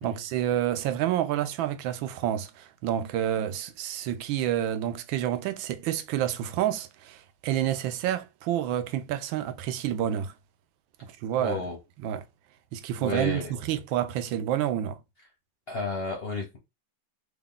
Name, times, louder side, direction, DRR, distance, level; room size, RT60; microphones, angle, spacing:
voice 1, 0.0-10.3 11.0-11.6 12.0-12.2 12.7-15.0, right 11 dB, 85° right, 1.3 m, -29 dB
voice 2, 11.4-11.8 13.0-13.5 15.7-16.6, left 2 dB, 55° left, 0.7 m, -32 dB
3.6 x 2.4 x 3.7 m
omnidirectional pair, 2.1 m